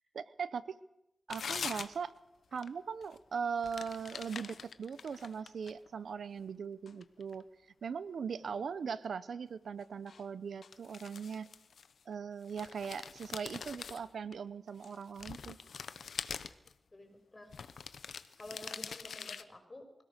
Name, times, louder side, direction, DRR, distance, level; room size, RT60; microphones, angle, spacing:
voice 1, 0.1-0.8 1.3-2.1 2.5-7.5 7.8-11.5 12.1-15.6, right 6 dB, 80° right, 15 dB, 0.8 m, -40 dB
sound 1, 1.3-2.2 2.5-2.7 3.0-3.2 3.6-5.9 6.4-7.4 10.1-10.2 10.6-12.1 12.4-14.3 14.8-16.7 17.5-19.4, left 6 dB, 85° left, 1.0 m, -44 dB
voice 2, 16.9-17.5 18.4-20.0, left 1 dB, 30° left, 5 dB, 5.7 m, -51 dB
24.5 x 17.5 x 6.6 m, 0.87 s
cardioid pair, 70°, 0 cm